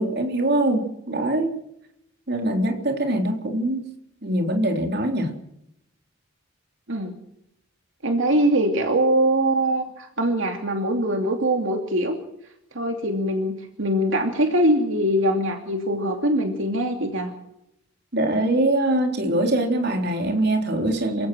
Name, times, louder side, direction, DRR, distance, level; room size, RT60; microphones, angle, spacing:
voice 1, 0.0-1.6 2.3-3.8 4.2-5.3 18.1-21.3, right 1 dB, 55° right, 3 dB, 3.7 m, -23 dB
voice 2, 8.0-12.2 12.7-17.3, right 1 dB, 70° right, 3 dB, 2.7 m, -22 dB
28.0 x 16.5 x 6.3 m, 0.79 s
head